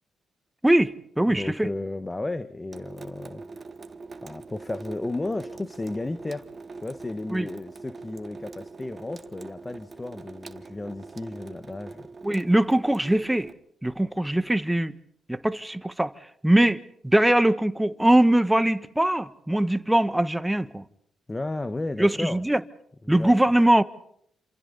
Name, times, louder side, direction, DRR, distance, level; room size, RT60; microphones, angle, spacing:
voice 1, 0.6-1.7 7.3-7.5 12.2-13.5 13.8-14.9 15.3-16.1 16.4-20.8 22.0-22.6 23.1-23.8, right 1 dB, 10° right, 1.5 m, -22 dB
voice 2, 1.3-3.4 4.2-6.5 6.8-12.1 21.3-22.4 23.1-23.3, left 2 dB, 25° left, 1.3 m, -33 dB
Water tap faucet / Sink (filling or washing) / Drip, 2.7-13.5, right 3 dB, 45° right, 1.5 m, -43 dB
28.0 x 27.5 x 4.1 m
hypercardioid pair, 45°, 0 cm